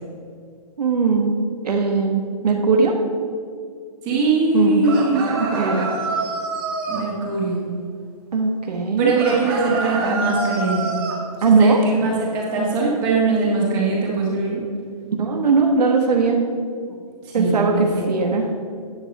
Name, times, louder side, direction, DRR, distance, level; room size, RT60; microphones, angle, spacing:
voice 1, 0.8-1.3 1.6-3.0 4.5-4.9 5.3-5.8 8.3-9.2 11.4-11.8 15.1-16.4 17.3-18.6, right 4 dB, 85° right, 2 dB, 1.4 m, -19 dB
voice 2, 4.0-5.3 6.9-7.6 9.0-10.9 11.4-14.6 17.2-18.1, right 3 dB, 20° right, -4 dB, 1.6 m, -21 dB
sound 1, 4.8-7.1 9.2-11.2, right 3 dB, 35° right, 1.7 m, -26 dB
10.5 x 5.9 x 5.3 m, 2.2 s
hypercardioid pair, 160°, 20 cm